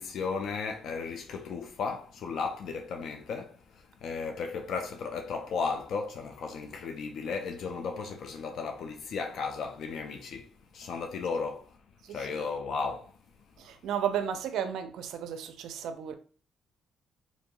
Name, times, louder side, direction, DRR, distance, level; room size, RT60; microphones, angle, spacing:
voice 1, 0.0-11.8 12.1-13.1, left 5 dB, 70° left, 0.3 m, -35 dB
voice 2, 13.6-16.1, right 9 dB, 80° right, 0.4 m, -33 dB
2.9 x 2.5 x 2.2 m
cardioid pair, 90°, 0 cm